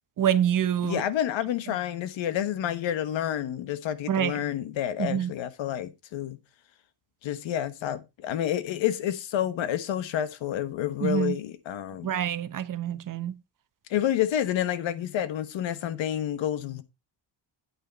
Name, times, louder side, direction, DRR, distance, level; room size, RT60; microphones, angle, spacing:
voice 1, 0.2-1.0 4.1-4.3 5.0-5.3 11.0-11.4 12.0-13.3, right 10 dB, 45° right, 0.9 m, -26 dB
voice 2, 0.8-6.4 7.2-12.1 13.9-16.8, left 11 dB, 85° left, 1.3 m, -29 dB
8.9 x 8.7 x 4.0 m
cardioid pair, 165°, 44 cm